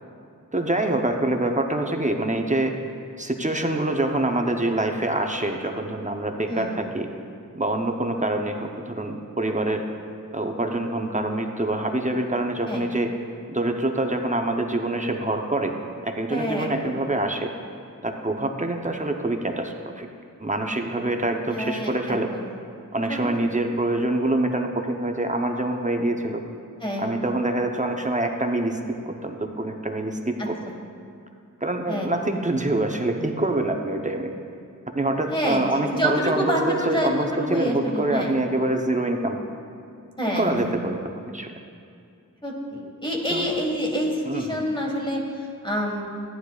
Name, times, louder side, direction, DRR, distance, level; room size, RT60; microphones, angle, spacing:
voice 1, 0.5-2.8 3.2-7.1 7.5-9.8 10.3-13.1 13.5-15.7 16.0-17.5 18.0-20.1 20.4-22.3 22.9-26.4 27.0-28.8 29.0-30.6 31.6-34.3 34.9-39.4 40.3-41.5 43.3-43.5 44.3-44.6, right 2 dB, 25° right, 3 dB, 0.7 m, -25 dB
voice 2, 6.5-6.8 12.7-12.9 16.3-16.9 21.5-22.5 23.1-23.2 26.8-27.1 30.4-30.7 31.9-32.1 35.3-38.4 40.2-40.7 42.4-46.0, equal, 15° left, -1 dB, 1.6 m, -27 dB
14.0 x 9.7 x 2.4 m, 2.4 s
wide cardioid pair, 65°, 33 cm